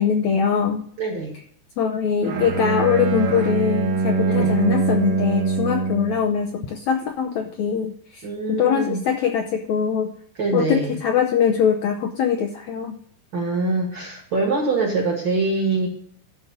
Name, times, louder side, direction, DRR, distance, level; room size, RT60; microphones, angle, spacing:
voice 1, 0.0-0.8 1.8-10.1 10.5-13.0, left 7 dB, 80° left, 5 dB, 1.6 m, -22 dB
voice 2, 1.0-1.4 4.2-4.5 8.2-9.0 10.4-11.0 13.3-15.9, right 3 dB, 45° right, 0 dB, 1.7 m, -24 dB
Bowed string instrument, 2.2-6.3, right 4 dB, 70° right, 3.4 m, -23 dB
12.0 x 4.0 x 6.7 m, 0.62 s
omnidirectional pair, 4.1 m